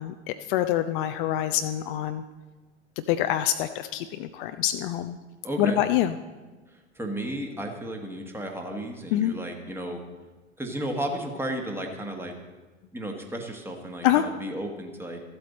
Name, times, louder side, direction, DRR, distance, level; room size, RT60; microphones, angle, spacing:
voice 1, 0.0-2.2 3.1-5.2 5.6-6.1 9.1-9.3 14.0-14.3, left 12 dB, 50° left, 9 dB, 0.5 m, -26 dB
voice 2, 5.4-5.8 6.7-10.0 10.6-12.4 12.9-15.2, right 1 dB, 5° right, 3 dB, 1.4 m, -33 dB
13.5 x 7.8 x 4.2 m, 1.2 s
figure-of-eight pair, 85°, 34 cm